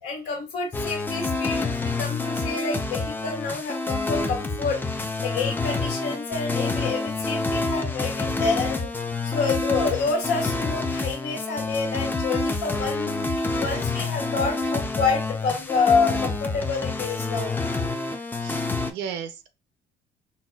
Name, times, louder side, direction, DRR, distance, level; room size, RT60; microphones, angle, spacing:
voice 1, 0.0-8.9 9.2-13.2 13.6-17.5, left 4 dB, 85° left, 1.6 m, -28 dB
sound 1, 0.7-18.9, left 3 dB, 10° left, 0.4 m, -28 dB
voice 2, 18.4-19.5, right 8 dB, 90° right, 0.5 m, -35 dB
4.0 x 2.2 x 2.3 m
cardioid pair, 110°, 17 cm